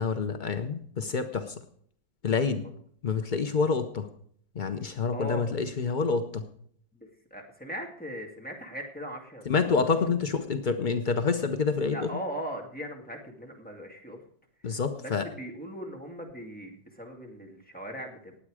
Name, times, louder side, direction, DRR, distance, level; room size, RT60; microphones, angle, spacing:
voice 1, 0.0-1.5 2.2-2.7 3.0-4.1 4.5-6.4 9.5-12.1 14.6-15.3, left 5 dB, 70° left, 8 dB, 0.4 m, -27 dB
voice 2, 5.1-5.5 6.9-10.1 11.8-14.2 14.6-18.4, equal, 5° left, 1 dB, 2.1 m, -39 dB
19.0 x 8.4 x 4.9 m, 0.63 s
omnidirectional pair, 2.0 m